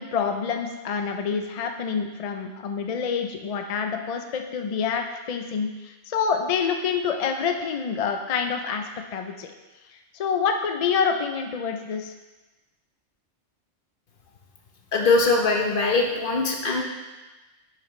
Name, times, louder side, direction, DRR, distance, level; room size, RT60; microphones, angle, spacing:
voice 1, 0.0-8.8 9.1-9.5 10.1-12.1, left 6 dB, 65° left, 5 dB, 0.3 m, -27 dB
voice 2, 14.9-16.8, left 3 dB, 50° left, 1 dB, 1.0 m, -21 dB
7.2 x 6.5 x 3.1 m, 1.1 s
omnidirectional pair, 1.2 m